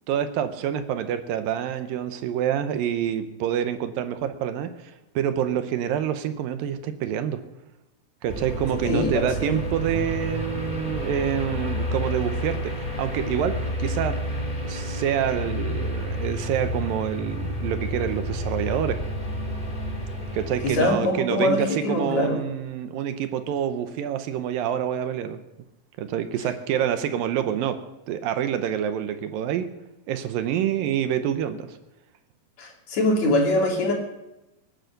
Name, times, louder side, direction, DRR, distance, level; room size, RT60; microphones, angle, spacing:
voice 1, 0.1-7.4 8.2-13.5 13.8-14.2 14.7-19.0 20.3-25.4 26.0-27.8 28.1-29.7 30.1-31.8, right 9 dB, 75° right, 9 dB, 2.5 m, -27 dB
sound 1, 8.3-21.0, equal, 15° left, 2.2 m, -30 dB
voice 2, 8.8-9.5 20.6-22.4 32.6-33.9, left 1 dB, 50° left, 0 dB, 3.9 m, -23 dB
23.5 x 9.2 x 6.6 m, 0.99 s
omnidirectional pair, 4.2 m